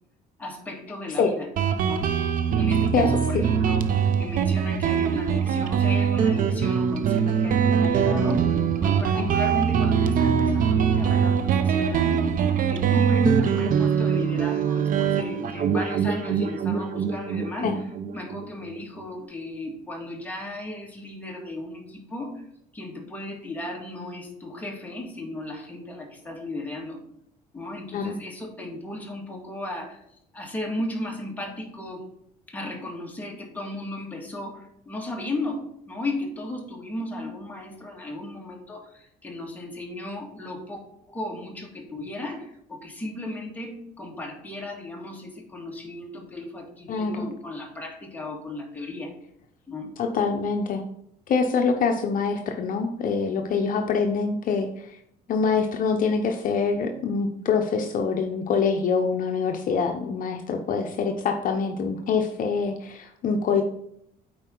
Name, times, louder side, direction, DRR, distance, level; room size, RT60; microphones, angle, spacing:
voice 1, 0.4-1.5 1.8-2.1 2.6-8.4 8.8-12.2 12.7-17.8 18.1-22.4 22.7-27.0 27.5-30.0 30.3-32.0 32.5-40.8 41.1-49.1 49.7-49.9, left 1 dB, 10° left, -1 dB, 1.9 m, -35 dB
Guitar, 1.6-18.8, right 7 dB, 55° right, 0.8 m, -23 dB
voice 2, 46.9-47.3 50.0-50.8 51.3-55.0 55.3-63.6, left 5 dB, 55° left, 4 dB, 0.8 m, -25 dB
8.8 x 4.5 x 3.8 m, 0.72 s
cardioid pair, 110°, 17 cm